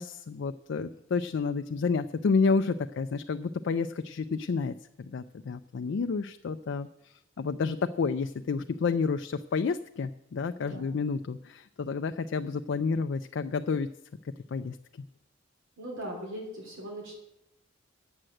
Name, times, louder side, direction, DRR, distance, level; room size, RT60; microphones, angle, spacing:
voice 1, 0.0-13.9 14.5-14.8, left 4 dB, 60° left, 8 dB, 0.4 m, -30 dB
voice 2, 10.6-10.9 15.8-17.1, equal, 70° right, 0 dB, 3.3 m, -39 dB
8.8 x 7.7 x 7.7 m, 0.83 s
head